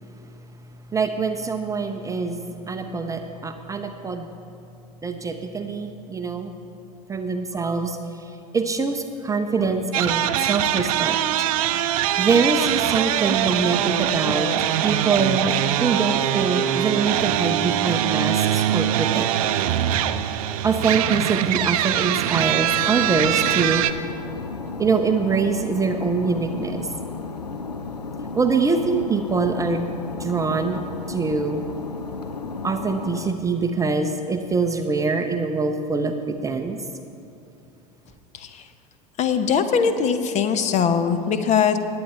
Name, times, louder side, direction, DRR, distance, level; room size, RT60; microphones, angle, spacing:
voice 1, 0.9-4.3 5.0-6.5 7.1-11.5 12.2-14.5 14.8-19.4 20.6-24.1 24.8-26.9 28.3-29.9 30.2-30.8 31.1-31.6 32.6-36.8, right 4 dB, 15° right, 6 dB, 0.6 m, -24 dB
sound 1, 9.9-23.9, right 11 dB, 60° right, 0.5 m, -23 dB
sound 2, 22.6-33.3, left 4 dB, 90° left, 0.6 m, -34 dB
voice 2, 39.2-41.8, left 7 dB, 35° left, 9 dB, 0.9 m, -21 dB
20.0 x 8.8 x 3.4 m, 2.7 s
figure-of-eight pair, 80°, 20 cm